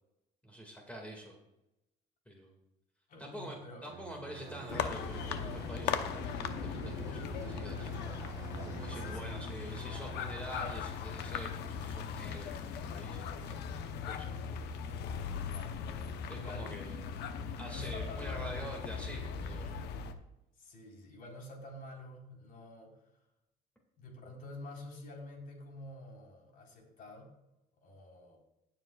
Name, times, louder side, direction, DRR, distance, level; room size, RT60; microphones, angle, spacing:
voice 1, 0.4-1.4 2.3-2.6 3.2-7.9 8.6-14.7 16.3-17.0 17.6-19.8, equal, 10° left, 0 dB, 2.1 m, -46 dB
voice 2, 3.1-3.9 8.9-9.5 15.5-16.7 17.6-18.6 20.6-23.0 24.0-27.3 27.8-28.4, left 1 dB, 55° left, -1 dB, 4.1 m, -49 dB
Bowed string instrument, 3.9-9.6, right 12 dB, 75° right, 0.7 m, -49 dB
sound 1, 4.3-10.8, right 2 dB, 20° right, 1.5 m, -51 dB
sound 2, 4.7-20.1, left 6 dB, 85° left, 0.9 m, -39 dB
18.5 x 7.3 x 2.4 m, 0.89 s
cardioid pair, 110°, 17 cm